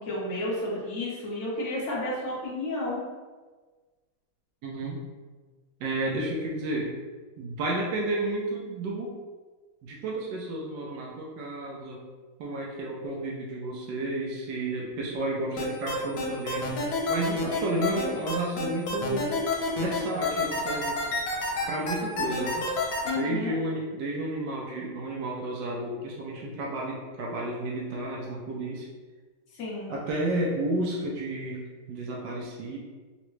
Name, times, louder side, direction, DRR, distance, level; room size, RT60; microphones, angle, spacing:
voice 1, 0.0-3.0 23.0-23.6 29.5-29.9, left 2 dB, 50° left, -5 dB, 0.9 m, -31 dB
voice 2, 4.6-5.0 5.8-6.9 7.4-9.2 9.8-12.0 12.4-16.7 17.1-19.4 19.8-21.0 21.7-22.7 23.2-28.9 29.9-32.8, right 1 dB, 75° right, -2 dB, 1.0 m, -32 dB
sound 1, 15.6-23.1, left 3 dB, 80° left, 1.5 m, -28 dB
3.8 x 2.1 x 3.0 m, 1.3 s
omnidirectional pair, 2.3 m